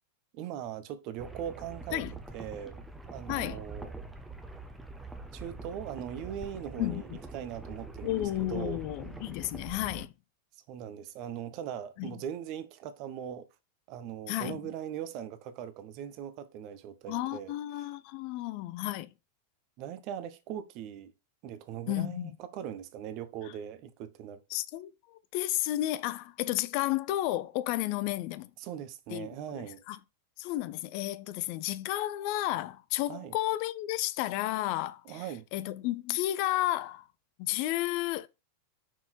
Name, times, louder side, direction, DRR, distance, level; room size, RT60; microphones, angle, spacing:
voice 1, 0.3-2.0 2.3-3.9 5.3-8.8 10.7-13.5 13.9-17.6 19.8-21.1 21.4-24.4 28.6-29.8 33.1-33.4 35.0-35.4, right 9 dB, 40° right, 0.9 m, -40 dB
sound 1, 1.2-10.1, right 3 dB, 5° right, 1.0 m, -44 dB
voice 2, 3.3-3.6 6.8-7.2 8.0-10.1 12.0-12.1 14.3-14.6 17.1-19.1 21.9-22.3 24.5-28.5 29.1-29.3 29.6-30.0 30.4-35.2 35.5-37.0 37.4-38.3, left 15 dB, 45° left, 0.6 m, -32 dB
6.1 x 4.3 x 4.4 m
figure-of-eight pair, 90°, 0 cm